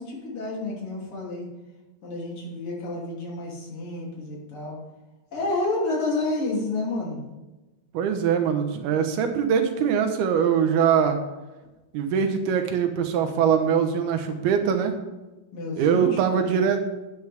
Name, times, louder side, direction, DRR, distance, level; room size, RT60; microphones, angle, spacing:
voice 1, 0.0-1.5 2.0-4.8 5.3-7.2 15.5-16.7, left 2 dB, 40° left, -3 dB, 3.4 m, -30 dB
voice 2, 7.9-11.2 11.9-14.9 15.8-16.8, right 7 dB, 85° right, 6 dB, 3.0 m, -22 dB
13.0 x 9.7 x 3.5 m, 1.1 s
omnidirectional pair, 4.4 m